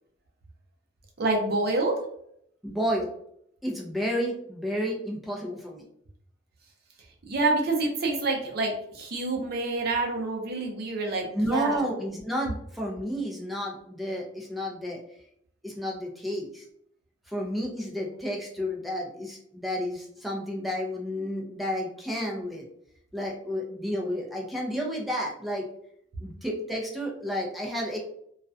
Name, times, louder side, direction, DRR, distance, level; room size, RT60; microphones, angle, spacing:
voice 1, 1.2-2.0 7.3-11.9, right 3 dB, 50° right, 1 dB, 0.6 m, -27 dB
voice 2, 2.6-3.1 3.6-5.8 11.3-15.0 15.6-16.6 17.3-22.6 23.1-25.7 26.2-28.0, equal, ahead, -2 dB, 0.4 m, -31 dB
2.3 x 2.1 x 2.5 m, 0.69 s
head